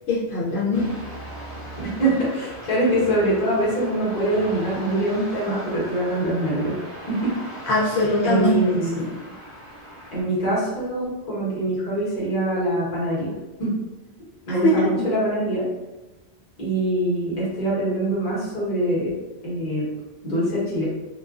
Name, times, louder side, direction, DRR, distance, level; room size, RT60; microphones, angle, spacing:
voice 1, 0.1-0.9 7.7-9.1 14.5-15.1, left 1 dB, 80° left, -7 dB, 0.9 m, -22 dB
sound 1, 0.7-10.2, equal, 15° right, 1.0 m, -38 dB
voice 2, 2.0-6.7 7.1-7.3 8.2-9.0 10.1-13.3 13.6-13.7 14.5-15.6 16.6-19.1 19.4-19.8 20.2-20.8, right 1 dB, 45° left, -8 dB, 1.1 m, -23 dB
2.4 x 2.3 x 2.3 m, 1.1 s
omnidirectional pair, 1.1 m